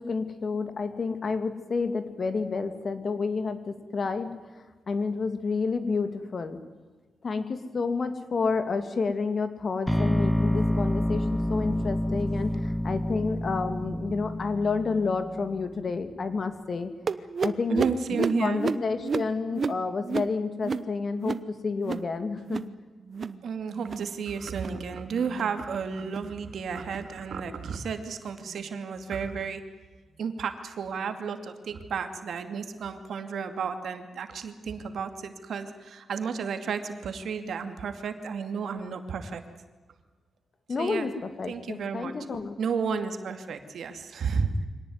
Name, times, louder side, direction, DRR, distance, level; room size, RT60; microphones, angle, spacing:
voice 1, 0.0-6.6 7.2-16.9 17.4-17.8 18.2-22.7 40.7-42.5, left 4 dB, 45° left, 9 dB, 2.4 m, -30 dB
sound 1, 9.9-15.9, left 1 dB, 5° left, 0.7 m, -28 dB
sound 2, 17.1-22.1 22.4-22.8 23.0-23.4 23.7-24.1 24.5-24.8 25.2-25.6 26.0-26.3 26.8-27.1 27.6-27.9 28.5-28.7 29.4-29.5 30.2-30.3, right 5 dB, 45° right, 0.9 m, -33 dB
voice 2, 17.7-18.6 23.4-29.6 30.2-39.4 40.8-41.1 41.5-42.1 42.6-44.7, right 6 dB, 70° right, 8 dB, 2.4 m, -32 dB
24.5 x 18.5 x 9.6 m, 1.3 s
wide cardioid pair, 120°, 0 cm